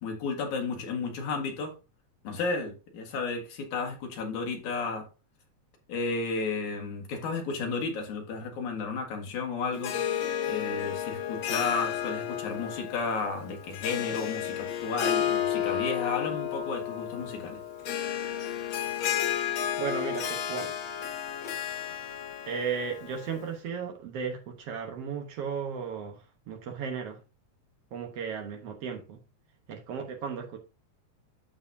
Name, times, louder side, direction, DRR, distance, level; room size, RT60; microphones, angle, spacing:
voice 1, 0.0-1.7 2.2-5.1 5.9-10.2 10.5-17.6, left 4 dB, 85° left, 3.2 m, -33 dB
Harp, 9.7-23.5, left 10 dB, 65° left, 2.2 m, -32 dB
voice 2, 19.8-20.7 22.5-26.2 26.5-27.2 27.9-29.2 29.7-30.6, right 6 dB, 60° right, 2.0 m, -35 dB
12.5 x 4.9 x 2.7 m
omnidirectional pair, 3.3 m